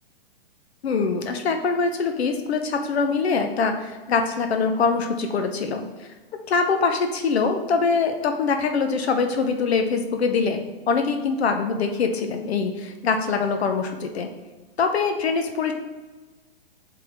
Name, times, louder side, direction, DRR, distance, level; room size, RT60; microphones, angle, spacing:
voice 1, 0.8-6.1 6.5-14.3 14.8-15.7, left 5 dB, 80° left, 5 dB, 0.7 m, -23 dB
7.8 x 3.5 x 3.4 m, 1.3 s
hypercardioid pair, 145°, 31 cm